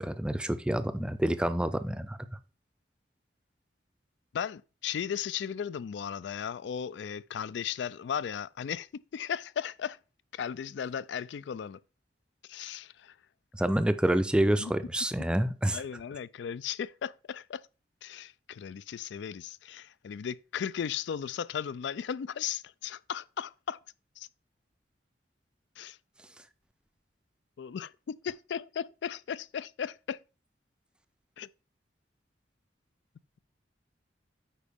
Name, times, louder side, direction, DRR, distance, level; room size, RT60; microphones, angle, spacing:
voice 1, 0.0-2.2 13.5-15.8, right 1 dB, 5° right, 0.4 m, -27 dB
voice 2, 4.3-8.9 9.1-10.0 10.3-11.8 12.5-13.2 14.4-14.7 15.7-17.6 18.0-23.8 24.2-24.3 25.8-26.0 27.6-30.2 31.4-31.5, left 8 dB, 75° left, 0.3 m, -36 dB
8.5 x 5.1 x 3.5 m
head